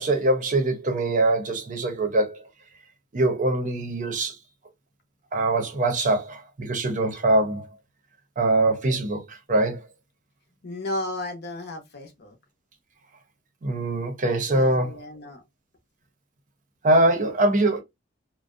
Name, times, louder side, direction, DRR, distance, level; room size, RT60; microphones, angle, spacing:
voice 1, 0.0-2.4 3.1-4.3 5.3-7.7 8.4-9.8 13.6-14.9 16.8-17.8, right 2 dB, 45° right, 0.6 m, -23 dB
voice 2, 10.6-12.4 14.5-15.4, left 1 dB, 55° left, 0.7 m, -34 dB
2.5 x 2.0 x 2.4 m
head